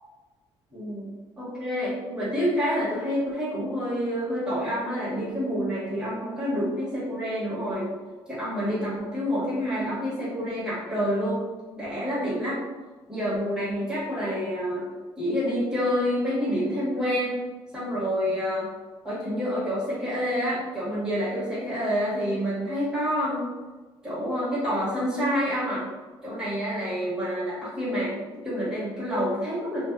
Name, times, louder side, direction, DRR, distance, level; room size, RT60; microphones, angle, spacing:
voice 1, 0.7-1.1 1.4-7.9 8.3-11.4 11.8-12.6 13.1-14.8 15.2-17.4 17.7-18.7 19.0-23.5 24.0-25.9 26.2-28.1 28.4-29.9, equal, 5° right, -10 dB, 1.2 m, -28 dB
2.4 x 2.4 x 2.3 m, 1.3 s
cardioid pair, 145°, 10 cm